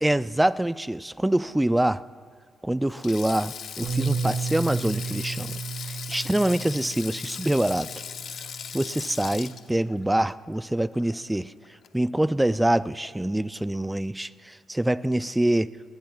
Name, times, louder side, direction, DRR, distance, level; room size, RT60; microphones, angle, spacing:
voice 1, 0.0-2.1 2.6-7.9 8.7-11.5 11.9-15.7, right 1 dB, 10° right, 17 dB, 0.3 m, -25 dB
Sink (filling or washing), 2.9-11.4 11.6-11.9 13.0-13.3, left 8 dB, 65° left, 0.6 m, -39 dB
Bass guitar, 3.8-10.1, right 5 dB, 75° right, 3.6 m, -34 dB
19.5 x 18.5 x 2.4 m, 2.1 s
cardioid pair, 90°, 0 cm